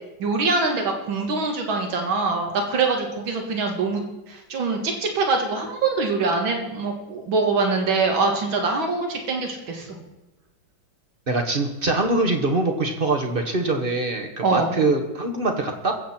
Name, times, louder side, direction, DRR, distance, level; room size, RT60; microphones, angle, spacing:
voice 1, 0.2-4.0 4.3-9.9 14.4-14.7, right 3 dB, 75° right, 3 dB, 2.6 m, -24 dB
voice 2, 11.3-15.9, right 2 dB, 30° right, 4 dB, 1.2 m, -23 dB
22.0 x 8.0 x 4.4 m, 1.0 s
omnidirectional pair, 2.2 m